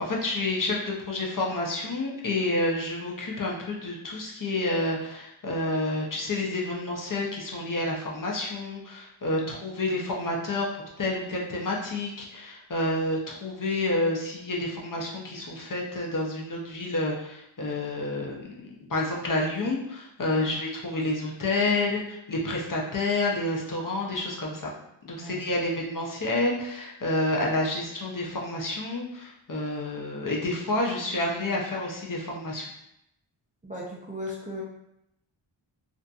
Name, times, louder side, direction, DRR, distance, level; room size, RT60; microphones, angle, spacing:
voice 1, 0.0-10.7 11.0-24.7 25.0-32.7, left 2 dB, 40° left, -2 dB, 0.5 m, -29 dB
voice 2, 25.2-25.5 33.6-34.6, equal, 20° right, -5 dB, 0.3 m, -37 dB
2.5 x 2.5 x 2.3 m, 0.83 s
wide cardioid pair, 75°, 50 cm